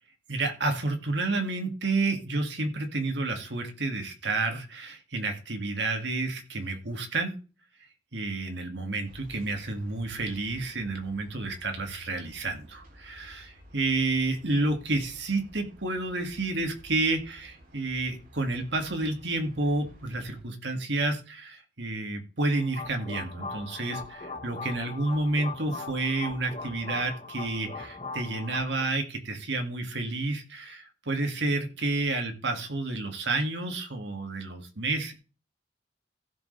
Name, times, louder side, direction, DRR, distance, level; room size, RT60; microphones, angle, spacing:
voice 1, 0.3-7.4 8.1-35.1, right 2 dB, 70° right, 4 dB, 2.3 m, -30 dB
sound 1, 9.0-20.4, equal, 50° right, 3.3 m, -53 dB
sound 2, 22.4-28.9, left 3 dB, 35° left, 1.4 m, -40 dB
15.5 x 6.8 x 3.4 m, 0.33 s
head